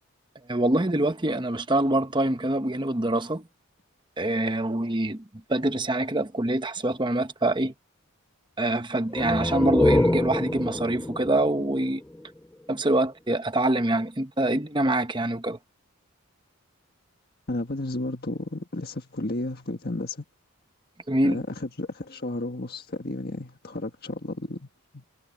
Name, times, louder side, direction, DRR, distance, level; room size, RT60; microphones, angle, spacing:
voice 1, 0.5-3.4 4.2-5.2 5.5-7.7 8.6-12.0 12.7-15.6 21.1-21.4, right 1 dB, 20° right, 1.0 m, -25 dB
sound 1, 9.1-12.7, left 1 dB, 10° left, 0.3 m, -26 dB
voice 2, 17.5-20.2 21.2-24.7 24.9-25.0, left 2 dB, 45° left, 1.6 m, -32 dB
head